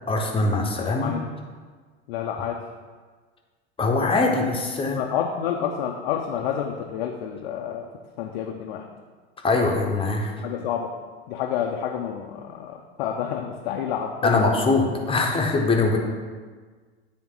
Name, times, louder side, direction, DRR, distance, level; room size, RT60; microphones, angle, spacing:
voice 1, 0.1-1.2 3.8-5.0 9.4-10.4 14.2-16.0, left 3 dB, 15° left, 1 dB, 1.1 m, -22 dB
voice 2, 0.8-1.2 2.1-2.6 4.2-4.4 5.0-7.9 8.2-8.9 10.4-10.9 11.3-14.4, left 9 dB, 60° left, 1 dB, 0.6 m, -29 dB
9.4 x 3.5 x 3.9 m, 1.5 s
hypercardioid pair, 85°, 32 cm